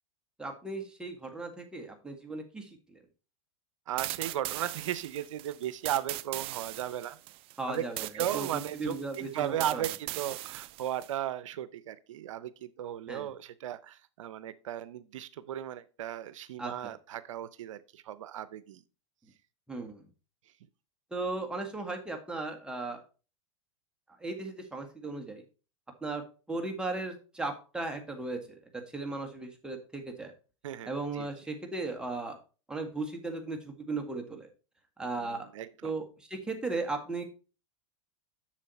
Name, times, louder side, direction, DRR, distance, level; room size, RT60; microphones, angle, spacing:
voice 1, 0.4-3.0 7.6-8.1 8.3-9.9 13.1-13.3 16.6-16.9 19.7-20.0 21.1-23.0 24.2-25.4 26.0-26.2 26.5-30.3 30.9-32.4 32.7-34.5 35.0-35.5 35.8-37.2, right 3 dB, 5° right, 1.7 m, -36 dB
voice 2, 3.9-7.2 7.7-7.8 8.1-18.8 30.6-31.3 35.2-35.9, right 11 dB, 80° right, 0.6 m, -36 dB
sound 1, 4.0-11.1, right 18 dB, 35° right, 0.3 m, -39 dB
7.4 x 6.3 x 4.2 m
hypercardioid pair, 125°, 16 cm